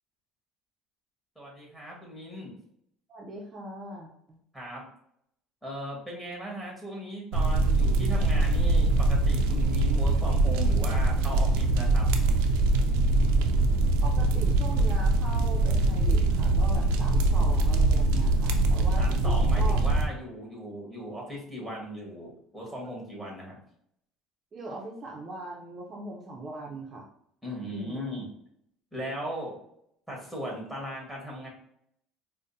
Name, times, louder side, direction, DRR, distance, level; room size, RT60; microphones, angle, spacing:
voice 1, 1.3-2.5 4.5-4.8 5.6-12.1 19.0-23.6 27.4-28.2 28.9-29.6 30.1-31.5, equal, 5° left, -3 dB, 1.5 m, -38 dB
voice 2, 3.1-4.1 14.0-19.8 24.5-27.1 27.7-28.2, right 2 dB, 30° right, -2 dB, 0.6 m, -40 dB
sound 1, 7.3-20.0, right 2 dB, 85° right, 0.4 m, -23 dB
4.9 x 2.1 x 2.7 m, 0.72 s
cardioid pair, 120°, 0 cm